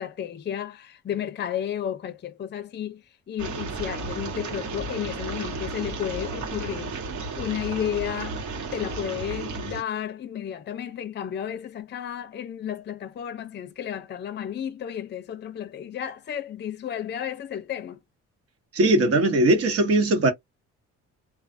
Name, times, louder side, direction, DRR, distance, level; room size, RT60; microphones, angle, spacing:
voice 1, 0.0-7.0 7.4-8.4 8.7-18.0, left 10 dB, 35° left, 0.5 m, -32 dB
sound 1, 3.4-9.8, right 3 dB, 75° right, 1.3 m, -33 dB
voice 2, 18.7-20.3, right 2 dB, 50° right, 1.1 m, -20 dB
2.4 x 2.3 x 2.6 m
cardioid pair, 90°, 30 cm